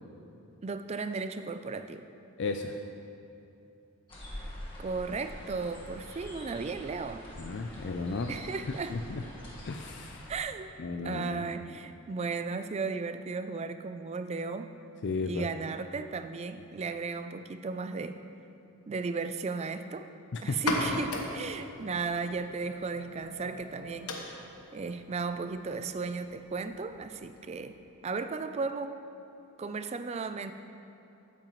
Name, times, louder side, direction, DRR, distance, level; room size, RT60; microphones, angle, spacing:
voice 1, 0.6-2.0 4.8-7.2 8.3-9.0 10.3-10.7 11.0-14.7 15.2-18.2 18.9-20.1 20.4-24.2 24.7-27.8 28.0-29.0 29.6-30.5, right 4 dB, 30° right, 10 dB, 0.3 m, -35 dB
voice 2, 2.4-2.8 7.4-8.3 8.9-9.2 9.6-10.3 10.8-11.4 15.0-15.5 20.3-20.6, left 4 dB, 50° left, 5 dB, 0.4 m, -34 dB
sound 1, 4.1-10.4, left 1 dB, 25° left, 1.6 m, -45 dB
sound 2, 20.5-27.9, left 2 dB, 80° left, 1.1 m, -39 dB
13.5 x 8.8 x 3.1 m, 2.9 s
head